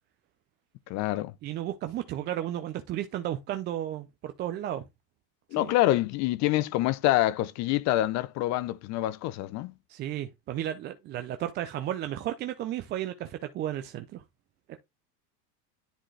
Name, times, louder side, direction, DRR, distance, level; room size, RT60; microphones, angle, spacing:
voice 1, 0.9-1.3 5.5-9.7, left 15 dB, 35° left, 0.5 m, -26 dB
voice 2, 1.4-4.8 5.6-5.7 9.9-14.2 14.7-14.8, right 12 dB, 25° right, 0.4 m, -33 dB
10.5 x 3.7 x 3.2 m
hypercardioid pair, 110°, 47 cm